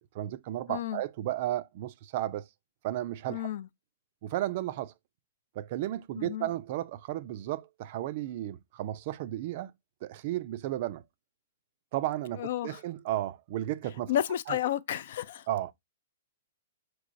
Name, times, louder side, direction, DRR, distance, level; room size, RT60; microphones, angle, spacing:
voice 1, 0.1-2.5 2.8-3.5 4.2-4.9 5.6-9.7 10.0-11.0 11.9-14.1 14.5-14.6 15.5-15.7, right 14 dB, 45° right, 0.3 m, -33 dB
voice 2, 0.7-1.0 3.3-3.7 6.2-6.5 12.4-12.8 14.1-15.5, left 11 dB, 60° left, 0.3 m, -31 dB
4.6 x 3.1 x 2.5 m
hypercardioid pair, 150°, 0 cm